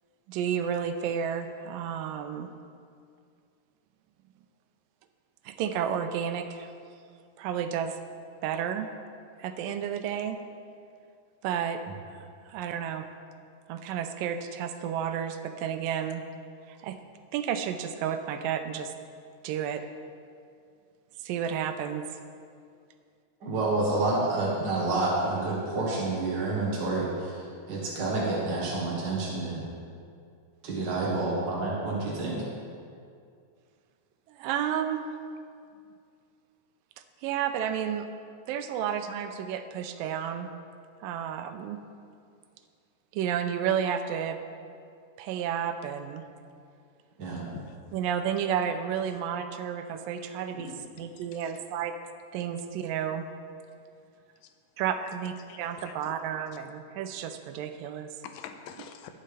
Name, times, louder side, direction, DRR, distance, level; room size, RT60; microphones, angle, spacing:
voice 1, 0.3-2.5 5.5-6.7 7.4-8.0 8.4-8.9 9.4-10.4 11.4-11.8 12.5-13.1 13.7-16.2 16.7-17.0 17.3-18.9 19.4-19.8 21.2-22.1 30.9-31.1 34.4-35.0 37.2-38.1 38.5-40.5 41.0-41.8 43.1-44.4 45.2-46.2 47.9-52.0 52.3-53.2 54.8-58.1, right 8 dB, 85° right, 8 dB, 2.3 m, -31 dB
voice 2, 23.4-27.3 27.7-29.6 30.6-32.4 47.2-47.4, right 2 dB, 55° right, -4 dB, 1.3 m, -28 dB
voice 3, 47.3-47.8 50.5-51.1 55.5-55.6 55.9-56.1 58.2-59.1, left 7 dB, 80° left, 6 dB, 2.3 m, -45 dB
18.5 x 6.6 x 3.4 m, 2.3 s
omnidirectional pair, 3.9 m